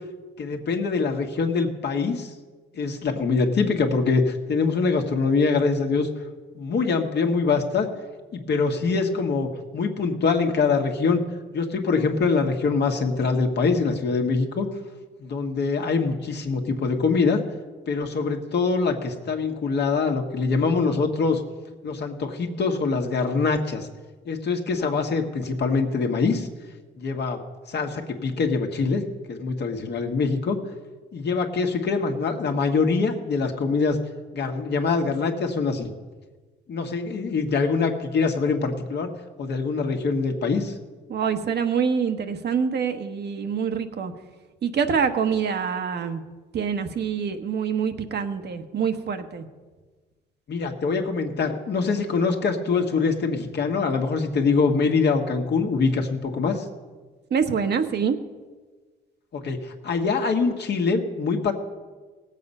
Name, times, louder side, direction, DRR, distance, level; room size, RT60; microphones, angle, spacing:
voice 1, 0.4-2.3 2.7-6.1 6.5-7.9 8.3-11.2 11.5-14.7 15.2-17.4 17.9-21.4 21.8-23.9 24.2-26.5 27.0-27.4 27.7-30.6 31.1-34.0 34.3-35.9 36.7-39.1 39.4-40.7 50.5-56.6 59.3-61.5, left 4 dB, 60° left, 4 dB, 1.4 m, -24 dB
voice 2, 41.1-44.1 44.6-46.2 46.5-49.5 57.3-58.2, right 6 dB, 55° right, 7 dB, 1.1 m, -25 dB
17.5 x 7.6 x 5.4 m, 1.4 s
cardioid pair, 90°, 20 cm